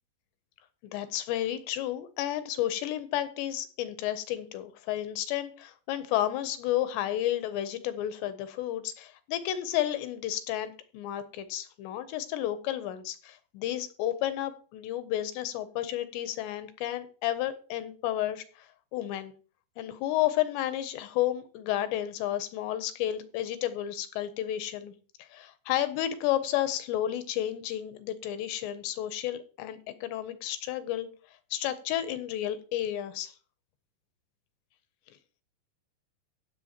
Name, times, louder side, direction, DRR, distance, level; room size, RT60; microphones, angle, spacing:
voice 1, 0.9-18.4 18.9-19.3 19.8-24.9 25.2-31.1 31.5-33.3, left 12 dB, 80° left, 11 dB, 2.8 m, -31 dB
16.5 x 6.9 x 2.9 m, 0.39 s
omnidirectional pair, 5.3 m